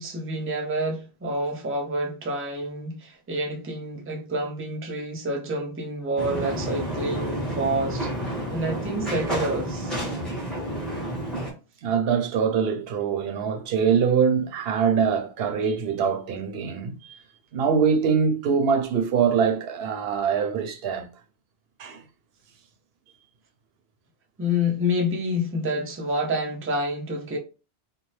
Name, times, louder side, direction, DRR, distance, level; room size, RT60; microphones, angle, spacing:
voice 1, 0.0-8.1 8.5-9.9 24.4-27.4, equal, 20° right, 0.3 m, -28 dB
sound 1, 6.2-11.5, right 1 dB, ahead, 1.0 m, -30 dB
voice 2, 11.8-17.2 17.5-21.1 21.8-22.0, right 6 dB, 75° right, 0.8 m, -23 dB
2.7 x 2.1 x 3.1 m
omnidirectional pair, 1.0 m